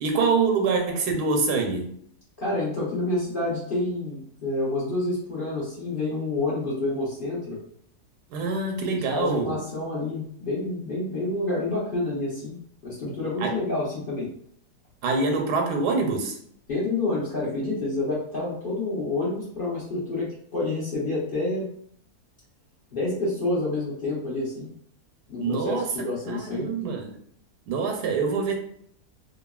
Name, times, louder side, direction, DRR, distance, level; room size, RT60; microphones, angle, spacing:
voice 1, 0.0-1.9 8.3-9.6 13.4-13.6 15.0-16.4 25.4-25.9 26.3-27.2 27.7-28.6, right 4 dB, 85° right, 2 dB, 1.2 m, -25 dB
voice 2, 2.4-7.6 8.8-14.3 16.7-21.7 22.9-24.7 25.3-26.7, left 2 dB, 45° left, -7 dB, 0.8 m, -28 dB
2.8 x 2.5 x 2.2 m, 0.66 s
omnidirectional pair, 1.7 m